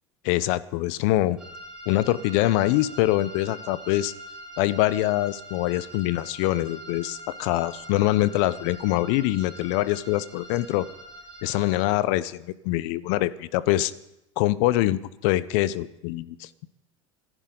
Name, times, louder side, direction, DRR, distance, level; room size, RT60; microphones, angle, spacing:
voice 1, 0.2-1.4 1.9-4.1 4.6-10.9 11.4-13.9 14.4-16.7, left 16 dB, 65° left, 18 dB, 0.8 m, -24 dB
sound 1, 1.4-11.9, equal, ahead, 5.6 m, -43 dB
25.5 x 11.0 x 3.9 m, 0.87 s
hypercardioid pair, 85°, 17 cm